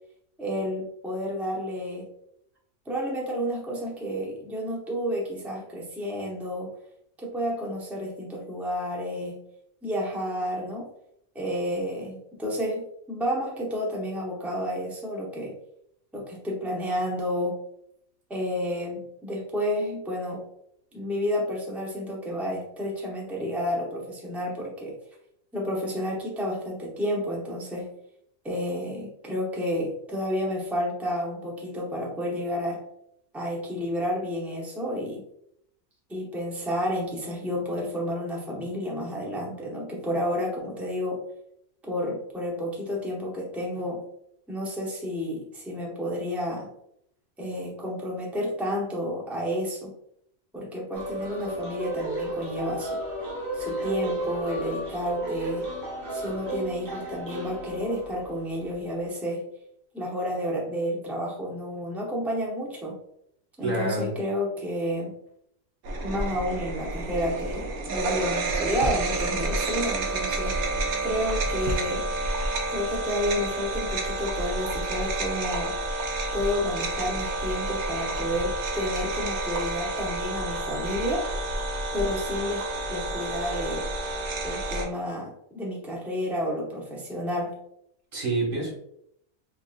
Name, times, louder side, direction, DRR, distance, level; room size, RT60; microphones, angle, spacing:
voice 1, 0.4-2.1 2.9-6.7 7.2-9.4 9.8-10.9 11.3-15.5 16.1-17.6 18.3-20.4 20.9-24.9 25.5-27.9 28.4-32.8 33.3-35.2 36.1-41.2 41.9-44.0 44.5-46.7 47.4-49.9 50.5-53.0 53.5-55.7 56.1-59.5 59.9-62.9 63.6-65.2 66.0-70.8 71.0-72.0 72.7-75.8 76.3-81.3 81.9-83.9 84.4-87.6, equal, ahead, -2 dB, 0.6 m, -30 dB
sound 1, 50.9-58.7, right 1 dB, 40° right, 1.1 m, -33 dB
voice 2, 63.6-64.1 88.1-88.7, right 2 dB, 60° right, -4 dB, 1.7 m, -27 dB
sound 2, 65.8-84.9, right 2 dB, 85° right, 1.2 m, -29 dB
3.7 x 3.5 x 2.4 m, 0.73 s
omnidirectional pair, 1.5 m